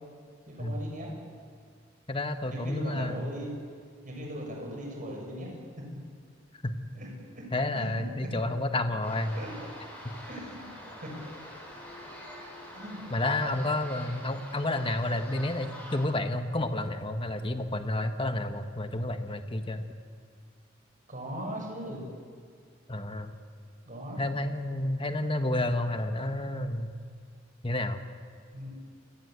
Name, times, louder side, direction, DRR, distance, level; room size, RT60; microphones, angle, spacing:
voice 1, 0.5-1.1 2.5-3.5 4.0-6.0 6.9-7.1 7.3-7.4 7.8-8.5 9.3-9.5 10.3-10.6 11.0-11.1 12.7-13.0 13.4-13.5 21.1-22.1 23.9-24.2 28.5-28.7, equal, 45° right, 0 dB, 7.7 m, -39 dB
voice 2, 2.1-3.3 6.6-6.7 7.5-9.4 13.1-19.8 22.9-23.3 24.2-27.0 27.6-28.0, left 1 dB, 25° left, 7 dB, 1.4 m, -30 dB
sound 1, 9.0-16.0, equal, 10° left, 7.7 m, -45 dB
29.0 x 21.5 x 8.3 m, 2.1 s
head